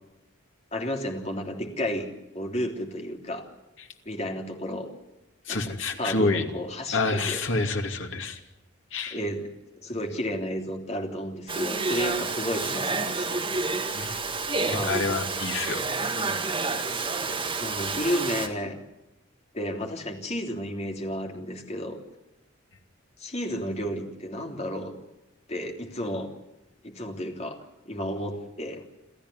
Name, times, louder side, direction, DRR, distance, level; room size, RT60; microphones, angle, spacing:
voice 1, 0.7-3.5 4.0-4.9 5.5-7.4 9.1-9.5 9.8-13.4 13.9-14.1 14.6-15.0 16.1-16.4 17.6-18.7 19.5-22.0 23.2-24.9 25.5-26.3 26.8-27.6 27.8-28.8, equal, 35° left, 2 dB, 3.3 m, -32 dB
voice 2, 5.5-6.4 6.9-8.4 8.9-9.2 13.9-14.2 14.8-15.8, left 3 dB, 70° left, 4 dB, 2.7 m, -27 dB
Domestic sounds home sounds, 11.5-18.5, right 3 dB, 25° right, 2.1 m, -29 dB
28.5 x 13.5 x 9.7 m, 0.97 s
head